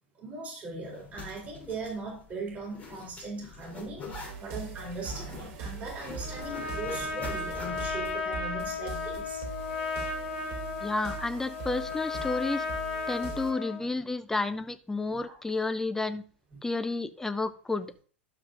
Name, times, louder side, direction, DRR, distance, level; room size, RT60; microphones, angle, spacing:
voice 1, 0.2-9.4 16.5-16.6, right 3 dB, 25° right, -2 dB, 4.2 m, -39 dB
Zipper (clothing), 0.8-8.1, left 4 dB, 25° left, 3.6 m, -45 dB
sound 1, 4.1-13.5, right 5 dB, 45° right, 3.0 m, -41 dB
Trumpet, 6.2-13.8, left 4 dB, 65° left, 2.0 m, -35 dB
voice 2, 10.8-12.7 13.1-16.2 16.6-18.0, left 3 dB, 5° left, 12 dB, 0.6 m, -31 dB
12.0 x 7.5 x 2.6 m, 0.42 s
figure-of-eight pair, 90°, 6 cm